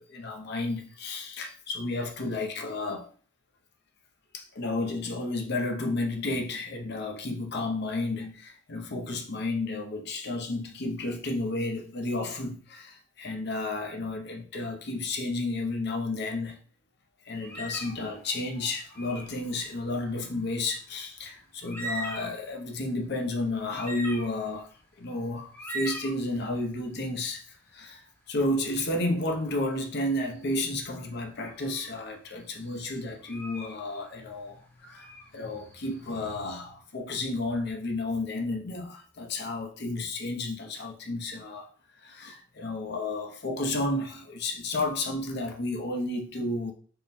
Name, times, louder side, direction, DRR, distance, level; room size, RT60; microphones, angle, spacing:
voice 1, 0.0-3.1 4.3-16.6 17.3-24.7 25.0-41.7 42.0-46.7, left 2 dB, 60° left, 0.7 m, -32 dB
sound 1, 17.4-18.1 18.9-19.4 21.2-21.3 21.6-22.5 23.1-23.2 23.7-24.6 25.5-26.1 29.5-29.7 30.4-30.8 31.5-31.9 32.5-33.8 34.9-36.0, right 1 dB, 10° left, 0.9 m, -39 dB
3.7 x 2.2 x 4.2 m
head